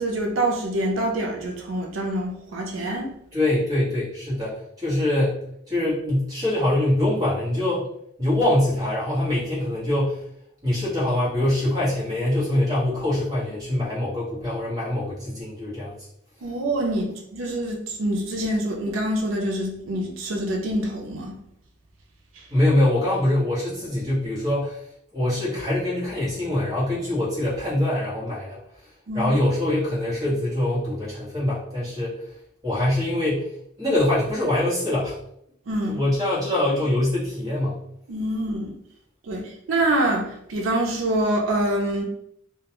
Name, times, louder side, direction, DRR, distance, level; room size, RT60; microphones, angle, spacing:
voice 1, 0.0-3.1 16.4-21.3 29.1-29.3 35.7-36.0 38.1-38.7 39.3-42.1, right 1 dB, 90° right, 1 dB, 0.5 m, -25 dB
voice 2, 3.3-5.4 5.7-7.9 8.2-10.2 10.6-15.9 22.5-24.8 25.1-28.6 29.1-32.2 32.6-33.5 33.8-35.2 35.9-37.8, left 1 dB, 20° right, -8 dB, 1.0 m, -24 dB
2.2 x 2.2 x 2.9 m, 0.73 s
head